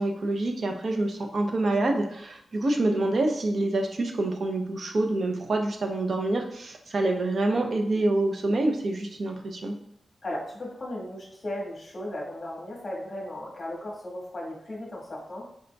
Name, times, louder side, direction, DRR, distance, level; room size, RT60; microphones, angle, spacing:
voice 1, 0.0-9.7, right 2 dB, 50° right, 3 dB, 0.6 m, -26 dB
voice 2, 10.2-15.5, left 1 dB, 35° left, -4 dB, 1.4 m, -36 dB
4.8 x 3.9 x 2.2 m, 0.71 s
wide cardioid pair, 120°, 0 cm